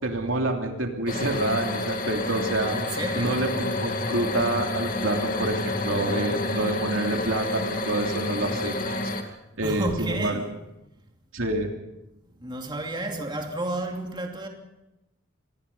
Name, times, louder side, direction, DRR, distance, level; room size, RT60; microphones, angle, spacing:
voice 1, 0.0-2.8 3.1-9.0 9.2-10.4 11.3-11.7, right 2 dB, 70° right, 3.1 m, -27 dB
sound 1, 1.1-9.2, left 2 dB, 45° left, 2.4 m, -29 dB
voice 2, 2.7-3.4 9.6-10.6 12.4-14.5, right 2 dB, 25° right, 2.7 m, -31 dB
26.0 x 20.5 x 5.6 m
head